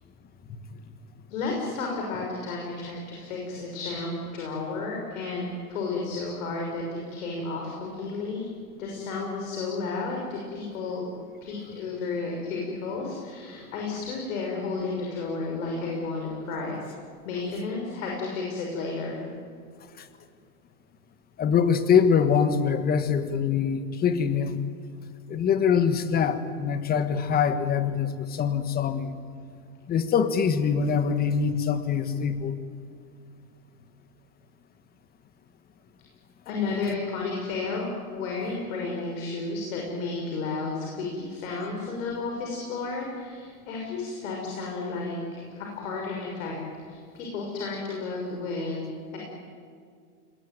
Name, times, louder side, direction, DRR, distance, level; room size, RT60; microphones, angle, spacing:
voice 1, 1.3-8.4 8.8-11.1 11.4-16.9 17.2-19.2 36.4-46.5 46.9-48.8 49.1-49.2, left 3 dB, 60° left, -1 dB, 6.4 m, -32 dB
voice 2, 21.4-24.6 25.3-29.1 29.9-32.6, left 7 dB, 20° left, 10 dB, 1.5 m, -24 dB
26.0 x 21.0 x 9.5 m, 2.2 s
hypercardioid pair, 135°, 46 cm